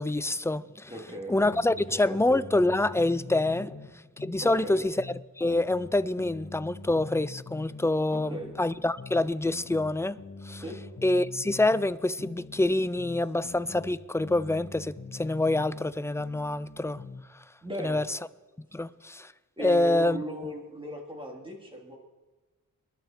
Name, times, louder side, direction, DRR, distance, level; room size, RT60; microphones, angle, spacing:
voice 1, 0.0-0.9 1.3-3.7 4.2-10.2 10.4-10.6 11.0-17.0 17.8-18.2 18.6-19.3 19.6-20.2, left 2 dB, 10° left, 0.4 m, -26 dB
voice 2, 0.9-1.8 2.1-2.2 3.6-3.7 4.4-4.8 8.1-8.5 10.6-10.8 17.6-18.0 19.6-22.0, right 1 dB, 15° right, 3.2 m, -38 dB
sound 1, 1.4-3.9 4.2-7.9 8.2-11.9 12.2-15.9 16.2-17.3, left 4 dB, 40° left, 1.7 m, -44 dB
26.5 x 11.0 x 4.5 m
wide cardioid pair, 100°, 35 cm